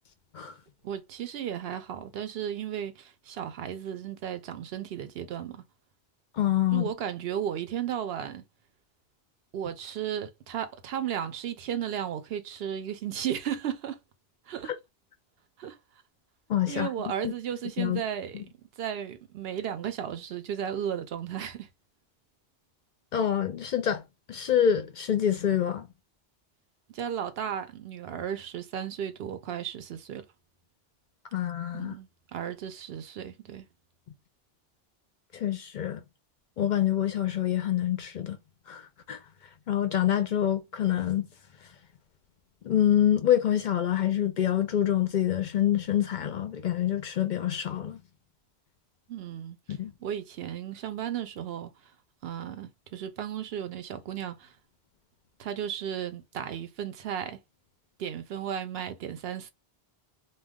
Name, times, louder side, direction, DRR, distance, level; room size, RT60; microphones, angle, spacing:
voice 1, 0.8-5.6 6.7-8.4 9.5-14.0 14.5-14.7 15.6-15.8 16.7-18.4 18.8-21.7 26.9-30.2 31.7-33.7 49.1-49.6 50.0-51.7 52.2-54.5 55.4-57.4 58.0-59.5, right 9 dB, 75° right, 0.8 m, -34 dB
voice 2, 6.4-6.9 16.5-16.9 17.2-17.3 17.8-18.0 23.1-24.0 24.3-25.9 31.3-31.9 35.3-36.0 36.6-38.4 38.7-38.8 39.1-39.2 39.7-41.3 42.6-48.0 49.7-49.9, left 10 dB, 60° left, 0.6 m, -26 dB
2.3 x 2.3 x 3.4 m
omnidirectional pair, 1.0 m